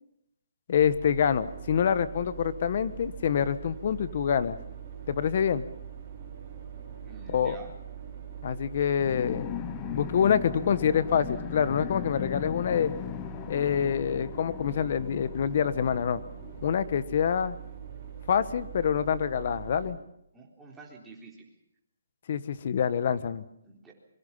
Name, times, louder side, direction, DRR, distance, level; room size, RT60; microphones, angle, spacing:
voice 1, 0.7-4.6 5.1-5.6 7.3-7.6 8.4-9.6 9.9-12.9 13.5-16.2 16.6-17.5 18.3-20.0 22.3-23.4, left 8 dB, 40° left, 14 dB, 1.3 m, -26 dB
sound 1, 0.7-19.9, right 8 dB, 25° right, 5.9 m, -43 dB
voice 2, 7.0-7.7 20.3-21.4 23.6-23.9, right 3 dB, 5° right, -2 dB, 3.8 m, -48 dB
sound 2, 9.0-17.1, left 13 dB, 20° left, 0.9 m, -39 dB
26.0 x 23.0 x 5.7 m, 0.79 s
hypercardioid pair, 170°, 0 cm